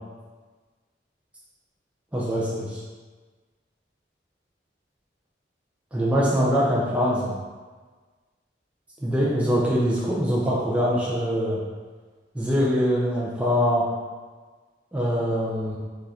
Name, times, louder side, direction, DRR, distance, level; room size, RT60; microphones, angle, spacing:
voice 1, 2.1-2.8 5.9-7.4 9.0-11.6 12.3-13.9 14.9-15.8, equal, 5° right, -7 dB, 0.3 m, -23 dB
3.3 x 2.3 x 2.7 m, 1.4 s
head